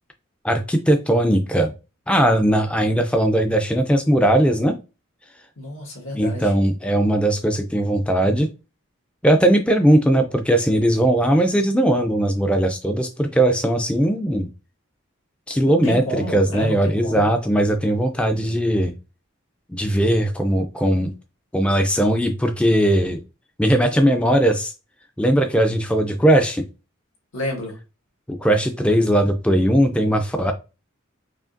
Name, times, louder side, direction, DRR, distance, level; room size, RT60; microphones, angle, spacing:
voice 1, 0.4-1.7 2.1-4.8 6.1-8.5 9.2-14.5 15.5-18.9 19.7-21.1 21.5-23.2 23.6-24.7 25.2-26.6 28.3-30.5, right 1 dB, 5° left, 0.3 m, -19 dB
voice 2, 5.6-6.5 15.7-17.3 27.3-27.8, left 1 dB, 80° left, 1.6 m, -30 dB
4.9 x 2.8 x 2.5 m
head